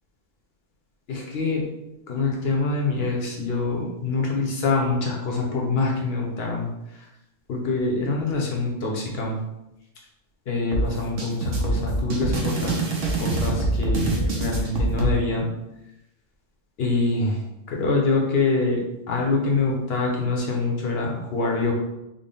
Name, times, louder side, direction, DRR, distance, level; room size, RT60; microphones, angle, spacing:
voice 1, 1.1-1.6 2.1-7.1 7.5-9.4 10.5-12.8 13.2-15.5 16.8-17.4 17.7-21.7, left 3 dB, 60° left, -1 dB, 0.9 m, -25 dB
sound 1, 10.7-15.1, right 2 dB, 80° right, 1.0 m, -25 dB
3.7 x 2.1 x 3.8 m, 0.91 s
omnidirectional pair, 1.3 m